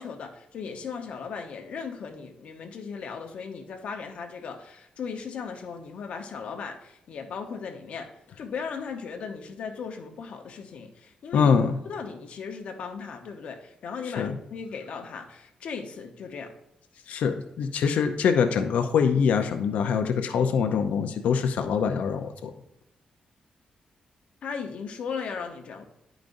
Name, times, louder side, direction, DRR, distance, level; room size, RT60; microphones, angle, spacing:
voice 1, 0.0-11.5 11.8-16.5 24.4-25.9, left 5 dB, 65° left, 4 dB, 0.9 m, -37 dB
voice 2, 11.3-11.8 14.2-14.3 17.1-22.5, left 6 dB, 80° left, 6 dB, 0.6 m, -24 dB
10.5 x 5.1 x 2.6 m, 0.84 s
wide cardioid pair, 170°, 2 cm